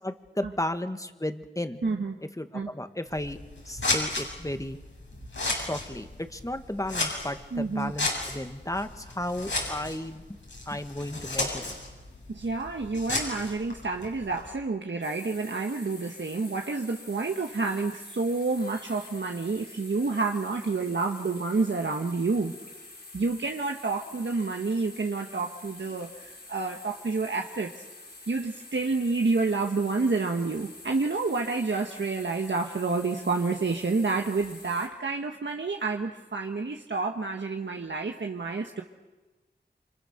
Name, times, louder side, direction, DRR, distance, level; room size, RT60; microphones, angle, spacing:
voice 1, 0.0-1.8 2.4-3.4 3.7-4.8 5.5-10.2 10.7-11.8, left 1 dB, 15° left, 8 dB, 1.8 m, -34 dB
voice 2, 1.8-2.2 2.5-2.7 7.5-7.9 12.3-22.5 23.1-27.8 28.3-38.8, right 3 dB, 75° right, 3 dB, 1.5 m, -29 dB
Scissors, 3.1-14.5, left 2 dB, 80° left, 6.4 m, -34 dB
sound 1, 15.0-34.9, left 2 dB, 60° left, 6.8 m, -47 dB
28.5 x 25.5 x 6.7 m, 1.2 s
wide cardioid pair, 45°, 19 cm